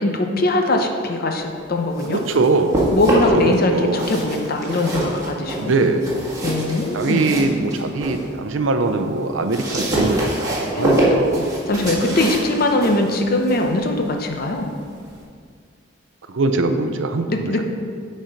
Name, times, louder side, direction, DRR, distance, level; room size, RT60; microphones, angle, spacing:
voice 1, 0.0-2.2 2.9-5.7 6.4-7.3 10.7-11.1 11.7-14.7 17.3-17.6, left 2 dB, 50° left, 3 dB, 0.7 m, -21 dB
sound 1, 1.7-3.5 3.9-8.2 8.6-15.2, right 1 dB, 20° right, 1.8 m, -25 dB
voice 2, 2.1-2.8 3.1-4.1 5.6-6.0 6.9-11.5 16.3-17.6, right 3 dB, 70° right, 7 dB, 0.6 m, -22 dB
8.9 x 4.3 x 5.1 m, 2.1 s
head